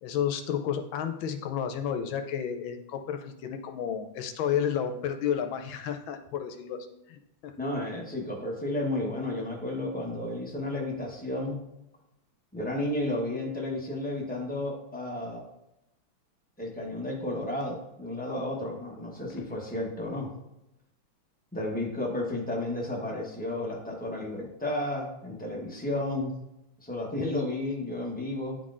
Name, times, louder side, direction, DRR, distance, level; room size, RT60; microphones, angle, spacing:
voice 1, 0.0-6.8 7.1-7.5, left 8 dB, 80° left, 6 dB, 1.4 m, -31 dB
voice 2, 7.6-11.6 12.5-15.4 16.6-20.3 21.5-26.3 26.8-28.6, left 1 dB, 10° left, -2 dB, 0.4 m, -32 dB
9.8 x 3.8 x 2.5 m, 0.89 s
omnidirectional pair, 2.1 m